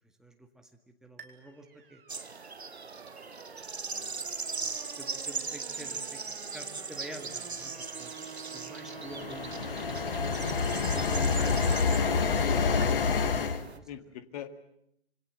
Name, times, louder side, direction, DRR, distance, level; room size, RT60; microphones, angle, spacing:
voice 1, 0.2-0.7 1.0-2.0 4.6-6.2 6.5-10.0 10.7-13.9, right 1 dB, ahead, 5 dB, 1.9 m, -48 dB
sound 1, 1.2-12.9, right 6 dB, 60° right, 4.2 m, -48 dB
sound 2, 2.1-13.8, right 4 dB, 80° right, 1.3 m, -40 dB
voice 2, 3.8-4.3 9.2-9.3 13.9-14.5, left 11 dB, 35° left, 10 dB, 2.0 m, -45 dB
sound 3, 8.9-13.6, left 5 dB, 60° left, 2.1 m, -27 dB
26.5 x 24.5 x 7.7 m, 0.76 s
figure-of-eight pair, 125°, 32 cm